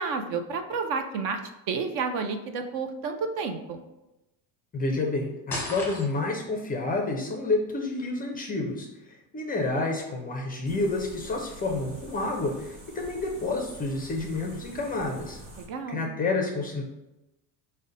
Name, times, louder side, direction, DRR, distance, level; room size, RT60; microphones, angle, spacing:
voice 1, 0.0-1.4 1.7-3.8 15.6-16.1, right 5 dB, 50° right, 6 dB, 0.5 m, -30 dB
voice 2, 4.7-15.4 15.9-16.8, left 3 dB, 20° left, 1 dB, 0.4 m, -29 dB
sound 1, 5.5-6.4, left 2 dB, 5° left, 0.9 m, -34 dB
sound 2, 10.6-15.7, equal, 30° right, 1.0 m, -47 dB
4.9 x 2.1 x 4.0 m, 0.95 s
cardioid pair, 135°, 44 cm